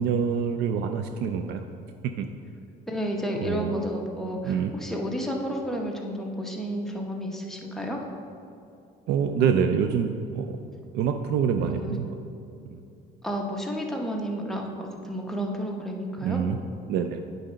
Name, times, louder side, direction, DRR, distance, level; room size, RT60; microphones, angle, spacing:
voice 1, 0.0-1.7 2.0-2.3 3.4-3.8 4.4-4.7 9.1-10.6 10.9-12.1 12.7-12.8 16.2-16.6 16.9-17.2, right 7 dB, 75° right, 7 dB, 0.4 m, -26 dB
voice 2, 2.9-4.5 4.8-8.0 11.6-12.0 13.2-16.4, equal, ahead, 0 dB, 0.9 m, -31 dB
8.9 x 4.0 x 5.5 m, 2.5 s
cardioid pair, 110°, 17 cm